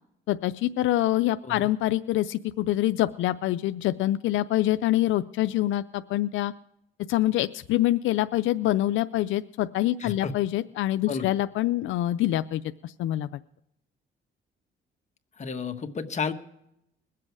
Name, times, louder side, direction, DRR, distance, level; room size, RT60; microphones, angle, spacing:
voice 1, 0.3-6.5 7.1-13.3, left 15 dB, 80° left, 12 dB, 0.4 m, -25 dB
voice 2, 10.0-10.3 11.1-11.3 15.4-16.3, left 5 dB, 35° left, 6 dB, 1.4 m, -31 dB
21.5 x 7.7 x 4.7 m, 0.79 s
cardioid pair, 90°, 20 cm